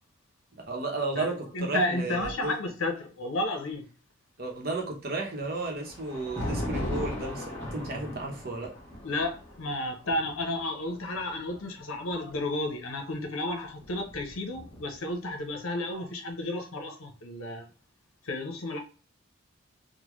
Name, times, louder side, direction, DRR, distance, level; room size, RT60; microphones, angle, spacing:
voice 1, 0.6-2.5 4.4-8.7, right 3 dB, 45° right, 2 dB, 0.8 m, -33 dB
voice 2, 1.5-3.8 9.0-17.7 18.2-18.8, left 1 dB, 80° left, 4 dB, 0.8 m, -32 dB
Thunder, 5.1-12.3 13.4-15.1, left 1 dB, 10° left, 0.9 m, -38 dB
3.7 x 2.2 x 3.0 m, 0.35 s
head